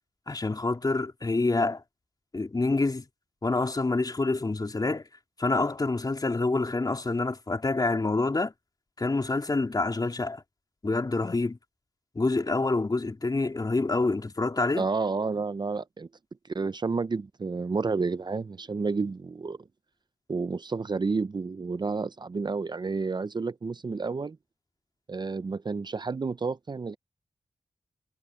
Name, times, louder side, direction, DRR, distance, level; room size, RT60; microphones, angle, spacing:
voice 1, 0.3-1.8 2.3-3.0 3.4-5.0 5.4-8.5 9.0-10.4 10.8-11.6 12.2-14.9, left 3 dB, 40° left, 3.6 m, -27 dB
voice 2, 14.8-16.1 16.5-19.6 20.3-24.4 25.1-27.0, right 4 dB, 45° right, 0.7 m, -30 dB
cardioid pair, 55°, 11 cm